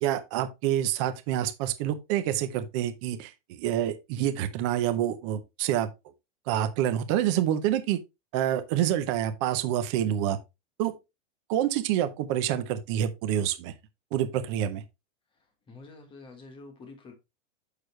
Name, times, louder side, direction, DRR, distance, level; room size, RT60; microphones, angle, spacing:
voice 1, 0.0-5.9 6.5-8.0 8.3-10.4 10.8-10.9 11.5-13.7 14.1-14.8, right 11 dB, 25° right, 0.5 m, -27 dB
voice 2, 15.7-17.2, left 3 dB, 15° left, 1.3 m, -47 dB
6.6 x 6.3 x 3.1 m
supercardioid pair, 170°, 37 cm